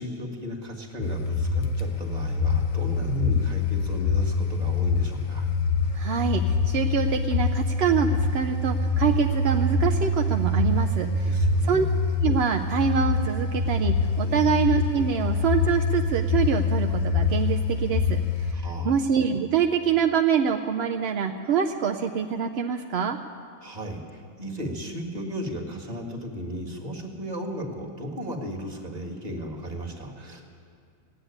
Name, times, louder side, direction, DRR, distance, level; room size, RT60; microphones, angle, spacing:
voice 1, 0.0-5.5 11.2-11.8 14.2-14.5 18.5-19.0 23.6-30.4, equal, 25° right, 0 dB, 1.7 m, -35 dB
sound 1, 1.0-18.5, left 3 dB, 65° left, 1.3 m, -25 dB
voice 2, 5.9-18.5 18.8-23.2, right 7 dB, 65° right, 4 dB, 0.6 m, -25 dB
16.5 x 8.0 x 9.9 m, 2.3 s
omnidirectional pair, 1.6 m